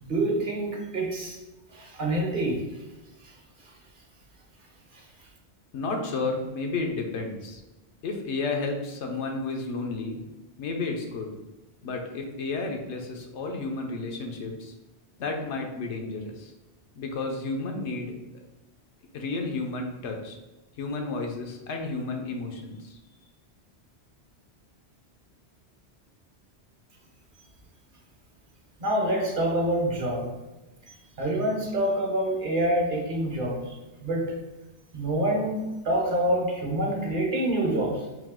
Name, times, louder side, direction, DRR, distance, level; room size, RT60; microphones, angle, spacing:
voice 1, 0.0-1.4 1.7-2.7 4.9-5.0 28.8-30.3 31.2-33.7 34.0-34.3 34.9-38.0, right 1 dB, 50° right, 0 dB, 0.9 m, -26 dB
voice 2, 5.7-7.6 8.0-10.2 10.6-11.3 11.8-14.7 15.2-16.5 17.0-18.1 19.1-20.4 20.8-23.0, left 3 dB, 90° left, 2 dB, 1.0 m, -32 dB
3.8 x 2.7 x 3.6 m, 1.0 s
omnidirectional pair, 1.2 m